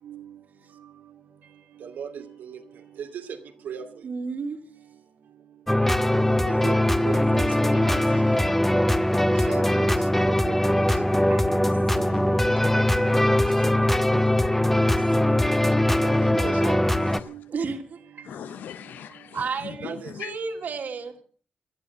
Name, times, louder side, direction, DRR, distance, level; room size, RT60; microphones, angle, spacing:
voice 1, 0.0-0.4 1.8-2.6 3.0-3.3 3.6-3.9 6.4-6.8 7.0-7.5 9.4-10.8 16.0-17.0 17.2-17.6 19.8-20.1, right 7 dB, 85° right, 2.4 m, -37 dB
voice 2, 4.0-4.6 7.3-8.6 11.3-12.5 12.9-14.2 14.6-15.7 17.5-18.4 19.0-21.1, right 5 dB, 70° right, 2.8 m, -36 dB
sound 1, 5.7-17.2, left 1 dB, 10° left, 1.2 m, -21 dB
voice 3, 18.2-20.3, left 9 dB, 85° left, 0.8 m, -39 dB
17.5 x 11.5 x 6.3 m
cardioid pair, 55°, 3 cm